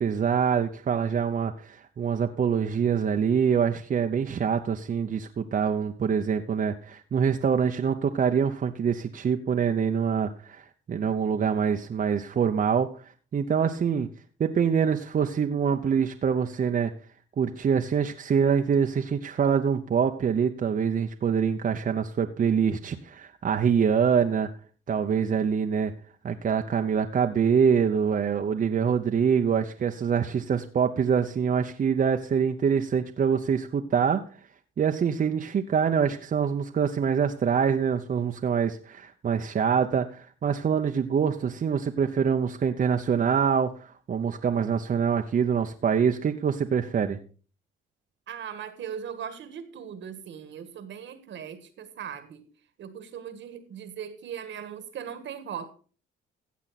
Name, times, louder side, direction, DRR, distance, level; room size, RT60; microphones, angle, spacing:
voice 1, 0.0-10.6 10.9-12.9 13.3-14.1 14.4-16.9 17.4-24.5 24.9-25.9 26.2-34.2 34.8-47.2, right 7 dB, 45° right, 5 dB, 0.8 m, -25 dB
voice 2, 48.3-52.4 52.8-55.7, right 8 dB, 70° right, 11 dB, 1.6 m, -39 dB
15.0 x 7.4 x 4.1 m, 0.39 s
cardioid pair, 90°, 20 cm